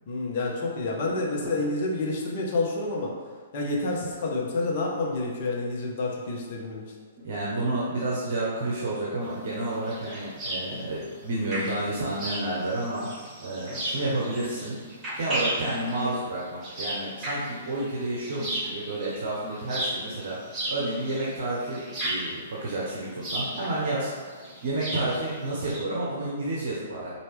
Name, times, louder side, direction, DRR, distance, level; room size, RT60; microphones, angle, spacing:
voice 1, 0.1-3.1 3.5-6.8, left 2 dB, 45° left, -2 dB, 0.8 m, -28 dB
voice 2, 7.2-13.1 13.4-14.8 15.1-24.4 24.6-27.1, right 2 dB, 55° right, -5 dB, 0.8 m, -30 dB
sound 1, 9.2-25.8, right 1 dB, 20° right, 1.3 m, -35 dB
4.4 x 2.7 x 3.3 m, 1.5 s
figure-of-eight pair, 115°, 0 cm